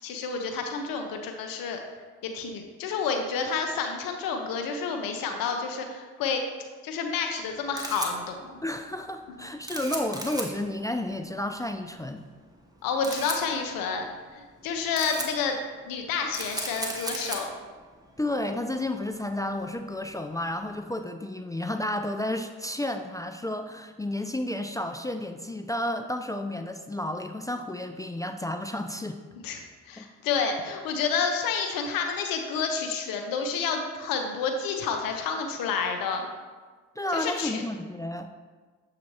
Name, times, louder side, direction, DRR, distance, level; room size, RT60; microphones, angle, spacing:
voice 1, 0.0-1.8 2.2-6.4 6.8-8.6 9.4-9.5 12.8-14.0 14.3-15.6 15.8-17.5 29.4-29.6 29.9-36.3 37.1-37.6, left 5 dB, 75° left, 4 dB, 0.7 m, -29 dB
Camera, 7.4-20.7, right 1 dB, 10° right, 1.0 m, -39 dB
voice 2, 8.6-12.2 18.2-29.2 30.0-30.1 30.4-30.5 37.0-38.3, left 1 dB, 10° left, 6 dB, 0.3 m, -31 dB
7.2 x 2.9 x 4.6 m, 1.4 s
supercardioid pair, 50°, 34 cm